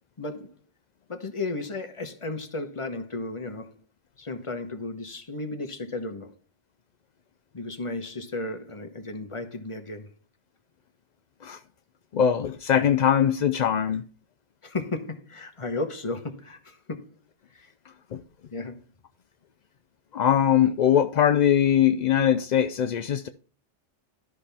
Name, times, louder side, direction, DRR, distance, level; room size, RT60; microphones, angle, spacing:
voice 1, 0.2-0.6 1.1-3.8 4.2-6.3 7.5-10.1 12.7-12.9 14.6-17.1 17.5-17.7 18.5-18.8, left 2 dB, 30° left, 1.0 m, -34 dB
voice 2, 12.1-14.0 18.1-18.2 20.1-23.3, left 9 dB, 60° left, 0.5 m, -21 dB
12.5 x 5.6 x 3.4 m
omnidirectional pair, 1.2 m